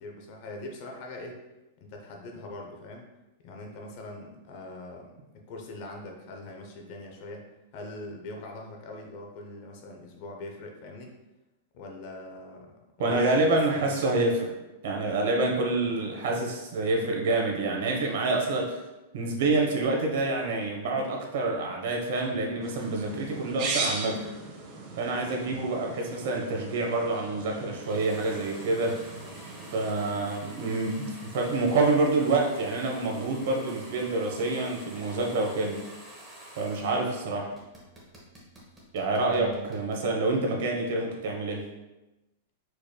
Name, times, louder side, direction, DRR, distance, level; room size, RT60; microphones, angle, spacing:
voice 1, 0.0-1.4 1.8-3.1 3.4-7.5 7.7-11.2 11.7-14.0 16.0-16.1 22.3-22.7 25.4-25.7 29.8-30.3 39.2-39.8, left 2 dB, 40° left, 2 dB, 0.7 m, -42 dB
voice 2, 13.0-14.5 14.8-18.8 19.1-24.3 25.0-29.0 29.7-35.8 36.6-37.5 38.9-41.6, right 2 dB, 60° right, 1 dB, 1.0 m, -27 dB
sound 1, 22.6-29.9, right 3 dB, 35° right, 0.7 m, -38 dB
sound 2, 27.8-37.2 37.5-40.0, right 1 dB, 10° right, 1.0 m, -48 dB
5.0 x 4.7 x 2.2 m, 1.0 s
supercardioid pair, 170°, 0 cm